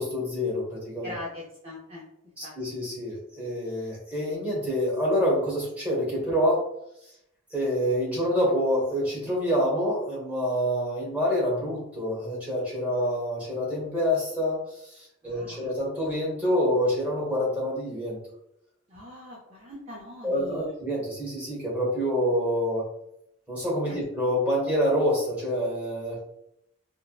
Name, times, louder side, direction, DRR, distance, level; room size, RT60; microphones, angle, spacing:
voice 1, 0.0-1.1 2.4-6.6 7.5-18.2 20.2-22.9 23.5-26.2, equal, 5° right, -5 dB, 1.1 m, -27 dB
voice 2, 1.0-2.1 2.4-2.6 15.2-15.7 18.9-20.7 23.9-24.0, left 2 dB, 30° right, -6 dB, 0.5 m, -41 dB
4.5 x 2.1 x 2.3 m, 0.79 s
head